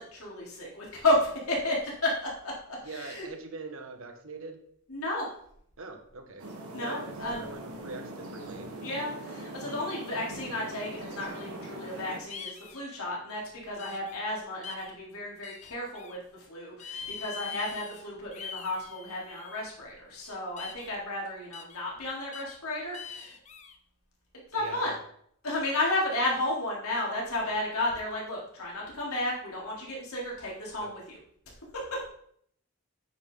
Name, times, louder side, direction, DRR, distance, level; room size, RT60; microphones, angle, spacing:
voice 1, 0.0-2.5 2.8-3.3 4.9-5.3 6.7-7.4 8.8-16.2 16.5-23.3 24.5-24.9 25.4-31.2 31.7-32.0, left 1 dB, 80° left, -3 dB, 3.6 m, -32 dB
voice 2, 2.8-4.6 5.8-6.4 6.7-8.7 24.5-24.9 30.8-30.9, right 3 dB, 65° right, 5 dB, 1.4 m, -42 dB
sound 1, 6.4-12.2, right 2 dB, 85° right, 1.9 m, -41 dB
sound 2, 12.3-12.8 13.8-14.2 14.6-14.9 15.4-16.2 16.8-18.0 18.3-19.6 20.6-21.0 21.5-21.8 22.3-22.6 22.9-23.7, left 6 dB, 30° left, 0.7 m, -43 dB
9.0 x 8.3 x 4.0 m, 0.65 s
head